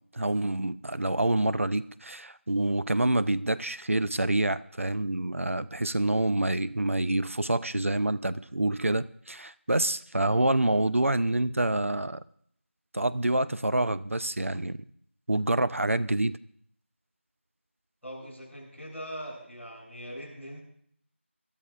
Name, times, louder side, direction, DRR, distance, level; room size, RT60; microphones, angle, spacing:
voice 1, 0.1-12.2 12.9-14.8 15.3-16.3, right 1 dB, 80° right, 14 dB, 0.6 m, -27 dB
voice 2, 18.0-20.6, equal, 5° right, -19 dB, 5.3 m, -41 dB
26.0 x 12.5 x 2.4 m, 0.66 s
figure-of-eight pair, 175°, 7 cm